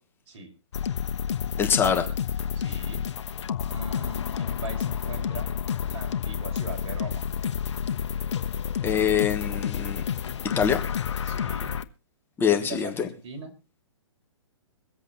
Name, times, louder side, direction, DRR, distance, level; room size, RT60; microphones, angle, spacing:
sound 1, 0.7-11.8, left 8 dB, 65° left, 1.1 m, -30 dB
voice 1, 1.6-2.1 8.8-10.0 10.4-10.8 12.4-13.1, left 7 dB, 15° left, 4 dB, 1.4 m, -24 dB
voice 2, 2.5-3.1 3.6-5.5 5.9-7.2 11.2-11.8 12.5-13.5, right 3 dB, 55° right, 1 dB, 5.8 m, -40 dB
23.5 x 8.2 x 3.9 m, 0.31 s
hypercardioid pair, 135°, 16 cm